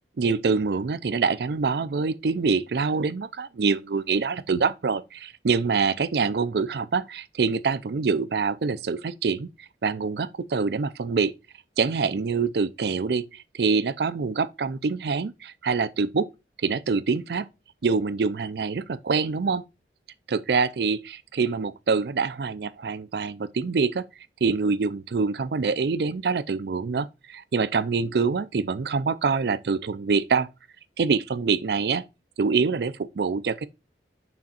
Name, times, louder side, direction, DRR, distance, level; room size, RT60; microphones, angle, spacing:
voice 1, 0.2-9.5 9.8-11.3 11.8-16.3 16.6-17.5 17.8-19.6 20.3-24.1 24.4-30.5 31.0-32.0 32.4-33.7, right 4 dB, 70° right, 0.4 m, -25 dB
6.4 x 3.5 x 4.2 m
head